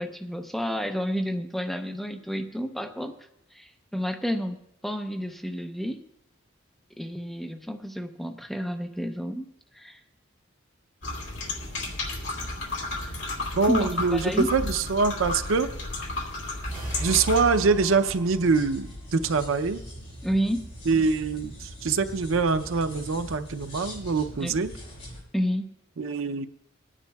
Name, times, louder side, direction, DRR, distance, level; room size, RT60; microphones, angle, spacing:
voice 1, 0.0-3.2 3.5-6.0 7.0-10.0 13.7-14.6 20.2-20.7 24.4-24.6 25.3-25.7, equal, ahead, 5 dB, 0.6 m, -30 dB
sound 1, 11.0-17.4, left 2 dB, 65° left, 2.3 m, -33 dB
voice 2, 13.6-15.7 17.0-19.8 20.9-24.7 26.0-26.5, right 4 dB, 85° right, 9 dB, 0.6 m, -24 dB
sound 2, 16.6-18.9, right 1 dB, 25° right, 3.4 m, -36 dB
sound 3, 16.7-25.2, equal, 35° left, 4.4 m, -42 dB
21.0 x 9.9 x 2.3 m, 0.80 s
head